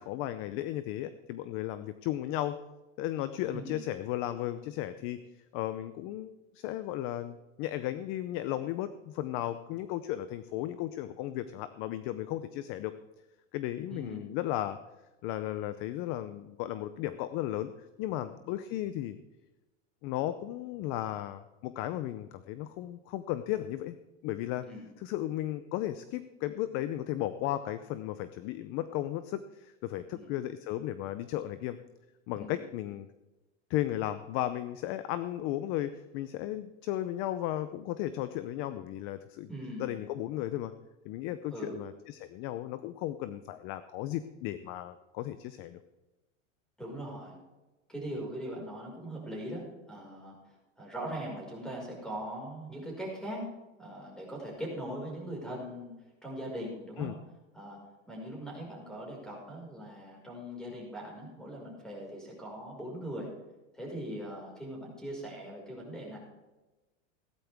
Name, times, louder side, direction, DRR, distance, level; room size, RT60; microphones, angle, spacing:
voice 1, 0.0-2.6 3.0-5.2 5.5-12.9 13.5-14.8 15.2-17.7 18.0-19.2 20.0-24.0 24.2-24.7 25.0-31.8 32.3-33.1 33.7-39.5 39.8-40.7 41.0-45.8 57.0-57.1, left 13 dB, 35° left, 12 dB, 0.6 m, -35 dB
voice 2, 13.9-14.2 18.1-18.3 24.6-24.9 30.1-30.4 32.3-32.6 39.5-39.9 41.5-41.8 46.8-47.4 47.9-53.5 53.8-55.9 56.2-57.1 57.5-57.8 58.1-63.3 63.7-66.2, right 1 dB, ahead, -2 dB, 5.2 m, -40 dB
16.0 x 12.5 x 3.5 m, 1.1 s
supercardioid pair, 145°, 37 cm